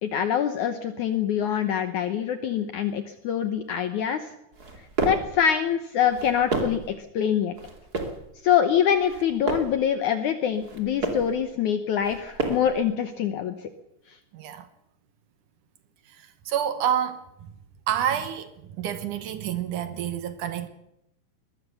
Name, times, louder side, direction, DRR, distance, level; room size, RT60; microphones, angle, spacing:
voice 1, 0.0-4.3 5.0-7.6 8.4-13.6, left 9 dB, 85° left, 1.7 m, -25 dB
sound 1, 4.5-5.3 6.0-6.9 7.6-8.2 8.9-9.8 10.5-11.3 12.0-12.8, right 2 dB, 25° right, 2.5 m, -30 dB
voice 2, 14.3-14.7 16.5-17.2 17.9-18.5 18.8-20.7, right 9 dB, 70° right, 2.0 m, -28 dB
21.0 x 20.0 x 6.9 m
omnidirectional pair, 5.0 m